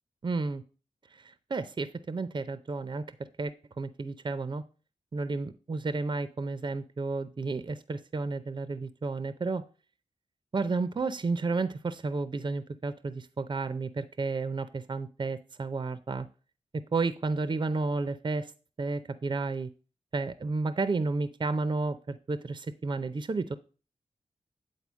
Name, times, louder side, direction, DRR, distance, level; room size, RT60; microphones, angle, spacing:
voice 1, 0.2-0.6 1.2-3.1 3.4-4.6 5.1-9.6 10.5-16.3 16.7-18.5 18.8-19.7 20.1-23.6, right 3 dB, 40° right, 13 dB, 0.5 m, -32 dB
8.3 x 4.0 x 6.1 m, 0.37 s
cardioid pair, 55°, 12 cm